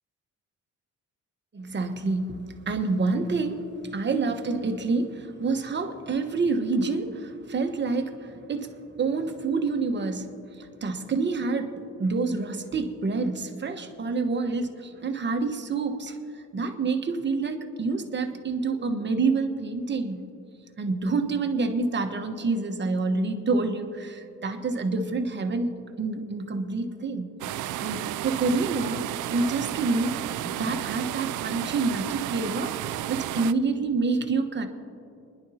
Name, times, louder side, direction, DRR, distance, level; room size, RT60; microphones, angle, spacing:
voice 1, 1.5-20.3 20.8-27.3 27.8-32.8 33.1-34.7, right 3 dB, 35° right, 5 dB, 1.2 m, -28 dB
sound 1, 27.4-33.5, right 13 dB, 80° right, 0.5 m, -32 dB
29.0 x 11.0 x 2.8 m, 2.6 s
cardioid pair, 90°, 30 cm